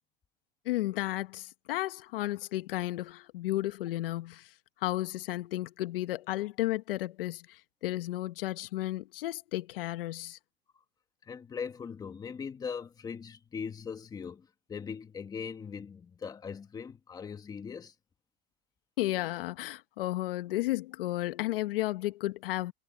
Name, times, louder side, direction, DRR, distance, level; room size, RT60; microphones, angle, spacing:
voice 1, 0.6-10.4 19.0-22.7, left 16 dB, 65° left, 1.2 m, -33 dB
voice 2, 11.2-17.9, left 6 dB, 10° left, 1.7 m, -40 dB
supercardioid pair, 160°, 30 cm